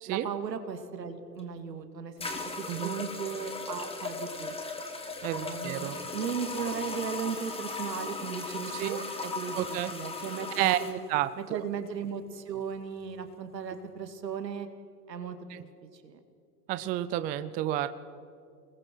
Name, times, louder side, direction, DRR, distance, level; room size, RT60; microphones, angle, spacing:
voice 1, 0.1-2.3 2.6-4.6 5.3-11.0 11.4-14.7 15.1-15.4 15.9-16.2, right 7 dB, 85° right, 8 dB, 2.3 m, -36 dB
sound 1, 1.4-1.5 2.2-11.0, left 3 dB, 10° left, 2.0 m, -37 dB
voice 2, 5.2-6.0 8.7-9.0 9.6-9.9 10.6-10.8 11.1-11.6 15.5-15.6 16.7-17.9, right 14 dB, 20° right, 13 dB, 0.4 m, -30 dB
29.5 x 20.5 x 4.5 m, 2.5 s
hypercardioid pair, 115°, 49 cm